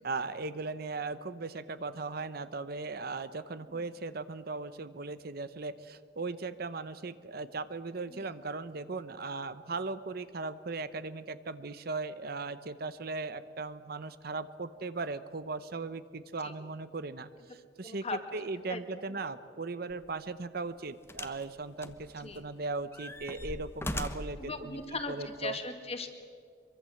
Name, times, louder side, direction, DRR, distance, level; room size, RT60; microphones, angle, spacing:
voice 1, 0.0-25.6, right 3 dB, 55° right, 13 dB, 0.8 m, -38 dB
voice 2, 17.8-18.2 18.7-19.2 22.2-22.4 24.4-26.1, left 3 dB, 35° left, 6 dB, 2.2 m, -39 dB
sound 1, 19.9-20.1 21.1-21.5 21.8-22.5 22.9-24.4 25.3-25.4, left 1 dB, 15° left, 1.1 m, -39 dB
25.5 x 23.5 x 7.8 m, 2.2 s
head